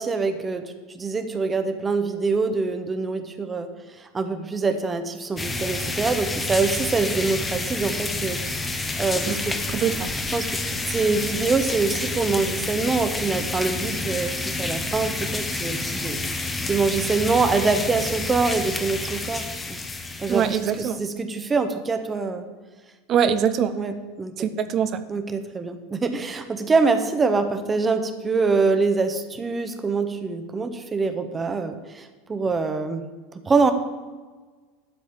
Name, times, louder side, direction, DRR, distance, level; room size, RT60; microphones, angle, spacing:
voice 1, 0.0-3.7 4.0-8.4 9.0-9.6 10.3-16.2 16.7-19.8 20.2-22.4 23.8-24.5 25.1-33.1 33.5-33.7, right 4 dB, 20° right, 8 dB, 1.2 m, -25 dB
sound 1, 5.4-20.9, left 2 dB, 15° left, 1.2 m, -29 dB
voice 2, 9.7-10.1 20.3-21.0 23.1-23.7 24.4-25.0, right 8 dB, 40° right, 11 dB, 0.9 m, -23 dB
12.5 x 4.9 x 8.7 m, 1.4 s
figure-of-eight pair, 75°, 0 cm